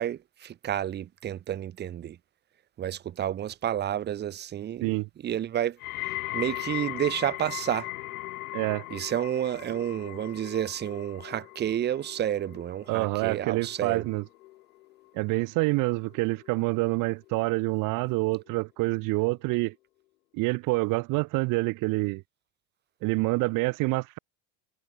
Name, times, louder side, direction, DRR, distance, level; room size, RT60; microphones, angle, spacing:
voice 1, 0.0-2.2 2.8-4.9 5.2-7.9 8.9-14.1, right 11 dB, 25° right, 1.2 m, -30 dB
sound 1, 5.8-16.9 17.2-17.8 18.5-18.6, left 19 dB, 85° left, 1.9 m, -39 dB
voice 2, 8.5-8.8 12.9-14.2 15.1-19.7 20.3-22.2 23.0-24.2, right 24 dB, 50° right, 2.8 m, -27 dB
supercardioid pair, 145°, 41 cm